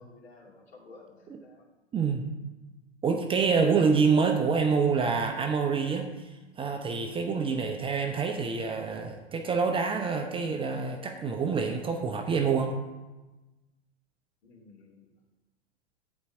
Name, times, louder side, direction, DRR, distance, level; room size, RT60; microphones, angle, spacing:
voice 1, 0.0-1.6 7.5-7.6 14.4-15.1, left 3 dB, 65° left, -1 dB, 2.6 m, -53 dB
voice 2, 1.9-2.3 3.0-6.1 6.6-12.7, right 5 dB, 15° right, 4 dB, 0.6 m, -26 dB
8.5 x 4.4 x 7.3 m, 1.1 s
figure-of-eight pair, 95°, 34 cm